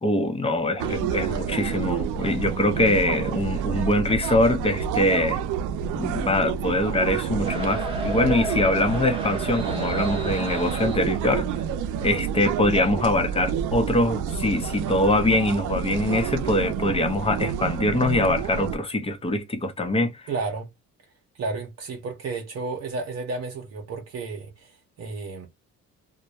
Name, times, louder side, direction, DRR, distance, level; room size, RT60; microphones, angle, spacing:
voice 1, 0.0-5.4 5.9-11.5 12.0-20.3, left 1 dB, 20° left, 0.7 m, -23 dB
sound 1, 0.8-18.8, right 7 dB, 85° right, 0.5 m, -29 dB
sound 2, 7.4-11.1, right 2 dB, 20° right, 0.9 m, -33 dB
voice 2, 20.3-20.7 21.3-25.5, right 3 dB, 55° right, 0.8 m, -32 dB
2.2 x 2.1 x 2.7 m
cardioid pair, 90°, 30 cm